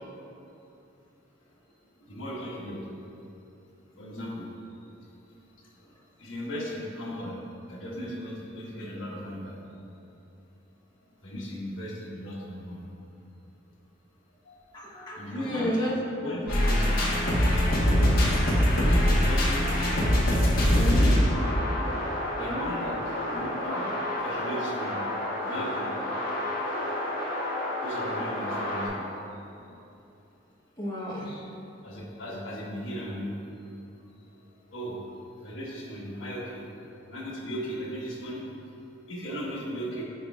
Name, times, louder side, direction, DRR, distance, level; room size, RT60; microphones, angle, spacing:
voice 1, 2.1-2.8 3.9-4.5 5.8-5.9 6.2-7.4 7.7-9.5 11.2-12.8 14.4-14.5 15.1-15.8 16.2-17.4 18.8-19.9 20.7-21.5 22.3-23.9 24.2-25.0 25.4-25.9 27.8-29.1 31.8-33.4 34.7-35.0 35.4-36.7 37.1-38.4 39.1-40.0, equal, 80° left, -4 dB, 1.4 m, -36 dB
voice 2, 14.7-16.0 16.2-17.1 17.4-17.6 20.8-21.1 30.8-31.5, left 1 dB, 25° left, -6 dB, 1.0 m, -33 dB
sound 1, 16.5-28.9, left 1 dB, 50° left, 1.3 m, -25 dB
9.5 x 5.2 x 2.4 m, 2.8 s
head